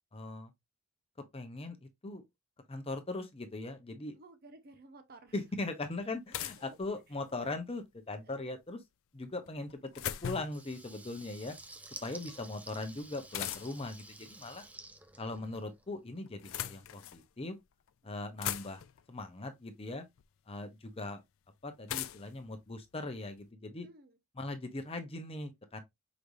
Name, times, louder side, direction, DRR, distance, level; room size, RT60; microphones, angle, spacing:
voice 1, 0.1-0.5 1.2-2.2 2.7-4.2 5.3-8.8 9.1-9.9 10.2-11.6 12.0-14.7 15.2-17.6 18.0-20.1 20.5-21.2 21.6-23.9 24.4-25.8, left 2 dB, 25° left, 0.7 m, -40 dB
voice 2, 4.1-5.3 6.6-6.8 8.2-8.4 11.2-11.4 14.7-14.9 23.8-24.2, right 2 dB, 45° right, 0.8 m, -56 dB
sound 1, 5.3-5.4 6.3-7.4 9.5-10.7 13.3-13.9 15.1-15.7 16.3-17.2 17.9-18.0 18.1-19.0 20.2-20.3 21.9-23.4, left 11 dB, 65° left, 0.4 m, -40 dB
Water tap faucet / Liquid, 10.4-15.9, right 2 dB, 5° right, 0.4 m, -51 dB
5.0 x 3.2 x 2.6 m
head